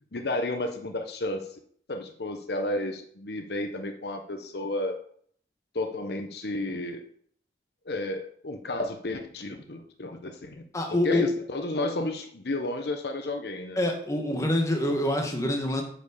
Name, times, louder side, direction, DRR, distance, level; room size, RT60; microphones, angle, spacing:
voice 1, 0.1-1.6 1.9-5.0 5.7-7.0 7.9-10.6 11.0-13.9, left 2 dB, 60° left, 6 dB, 0.9 m, -32 dB
voice 2, 10.7-11.3 13.8-15.8, left 1 dB, 15° left, 2 dB, 1.5 m, -26 dB
8.8 x 5.3 x 7.0 m, 0.62 s
head